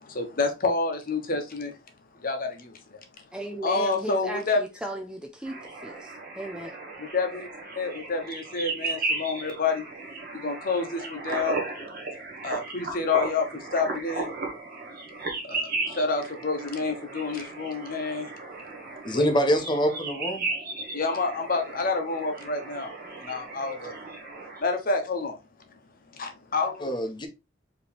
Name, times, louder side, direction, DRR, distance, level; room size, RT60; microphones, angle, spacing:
voice 1, 0.0-1.7 2.1-3.0 3.6-4.6 7.1-7.5 7.7-9.9 10.3-11.6 12.4-14.3 15.4-18.3 19.1-19.3 20.9-22.9 23.2-24.0 24.6-25.4 26.1-27.0, left 4 dB, 45° left, 1.0 m, -28 dB
voice 2, 3.3-6.8, right 1 dB, 5° right, 0.4 m, -36 dB
sound 1, 5.5-24.6, right 3 dB, 50° right, 1.3 m, -35 dB
voice 3, 19.0-20.5 26.8-27.3, equal, 25° left, 0.8 m, -25 dB
4.8 x 3.1 x 3.4 m
head